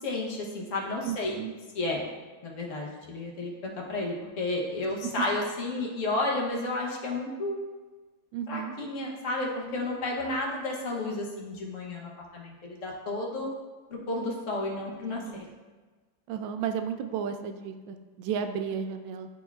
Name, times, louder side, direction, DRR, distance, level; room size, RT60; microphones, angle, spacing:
voice 1, 0.0-1.4 1.7-2.1 2.4-7.6 8.5-13.5 13.9-15.2, left 2 dB, 50° left, -2 dB, 1.1 m, -32 dB
voice 2, 1.0-1.5 5.0-5.1 8.3-8.7 15.2-15.4 16.3-19.3, right 7 dB, 80° right, 7 dB, 1.2 m, -33 dB
11.0 x 4.3 x 2.3 m, 1.3 s
omnidirectional pair, 2.1 m